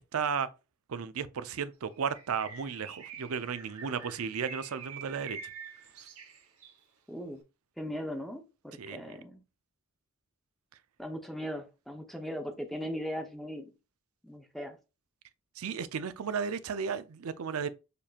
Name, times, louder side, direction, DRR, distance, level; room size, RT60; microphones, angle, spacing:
voice 1, 0.1-0.5 0.9-5.4 8.8-9.2 15.6-17.7, right 6 dB, 70° right, 0.5 m, -34 dB
Bird, 1.9-6.8, right 6 dB, 90° right, 1.2 m, -46 dB
voice 2, 7.1-7.4 7.8-9.4 11.0-13.7 14.2-14.8, equal, ahead, 0.7 m, -38 dB
6.7 x 2.8 x 2.4 m
head